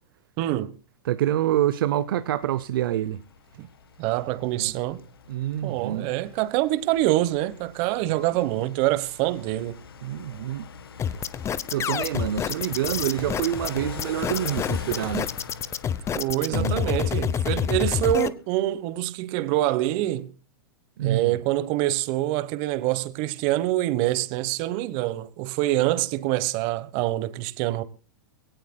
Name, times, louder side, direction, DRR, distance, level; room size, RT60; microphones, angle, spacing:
voice 1, 0.4-0.8 3.6-3.7 4.0-5.0 5.6-9.8 16.1-20.3 21.0-27.8, right 15 dB, 50° right, 1.2 m, -25 dB
voice 2, 1.0-3.2 4.6-4.7 5.3-6.2 10.0-10.7 11.1-11.2 11.7-15.3 16.5-16.8 21.0-21.4, right 12 dB, 70° right, 0.7 m, -27 dB
sound 1, 2.2-18.3, left 6 dB, 90° left, 1.5 m, -43 dB
sound 2, 11.0-18.3, left 8 dB, 25° left, 0.8 m, -27 dB
22.0 x 17.5 x 2.3 m
hypercardioid pair, 115°, 12 cm